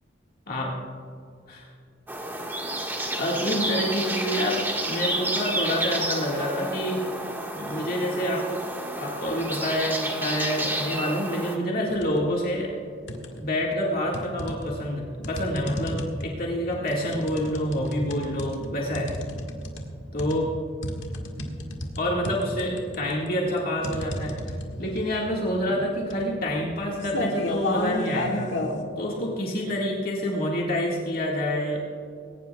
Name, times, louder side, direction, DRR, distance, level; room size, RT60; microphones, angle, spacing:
sound 1, 2.1-11.6, right 1 dB, 10° right, 1.6 m, -30 dB
voice 1, 3.2-7.0 7.5-8.6 9.0-12.7 13.4-19.1 20.1-20.5 22.0-28.6 29.0-31.8, equal, 50° left, -3 dB, 1.9 m, -27 dB
sound 2, 11.9-12.3 12.7-13.6 14.1-28.8, left 1 dB, 70° left, 1.7 m, -32 dB
21.0 x 18.5 x 2.3 m, 2.3 s
head